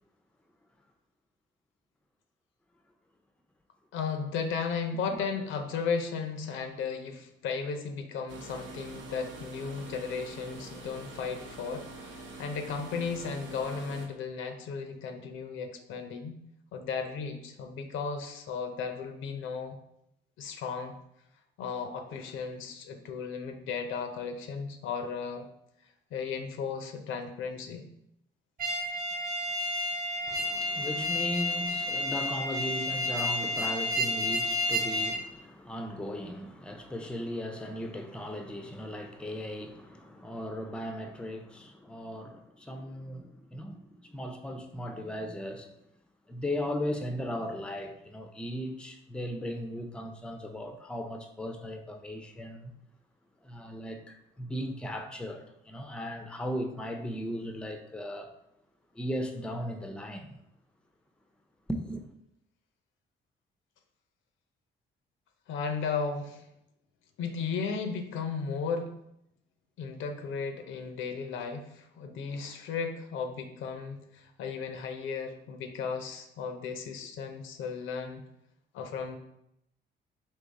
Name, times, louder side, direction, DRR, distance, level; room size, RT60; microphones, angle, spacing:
voice 1, 3.9-16.4 16.7-19.8 20.4-21.0 21.6-25.5 26.1-27.8 65.5-66.5 67.2-68.9 69.8-78.2 78.7-79.2, left 5 dB, 85° left, 0.6 m, -35 dB
sound 1, 8.3-14.1, right 3 dB, 80° right, 0.7 m, -45 dB
sound 2, 28.6-35.2, left 1 dB, 45° right, 1.0 m, -31 dB
voice 2, 30.3-45.7 46.3-52.7 53.4-58.3 58.9-60.4 61.7-62.0, equal, 5° left, 0.5 m, -37 dB
3.7 x 2.9 x 4.0 m
cardioid pair, 90°, 20 cm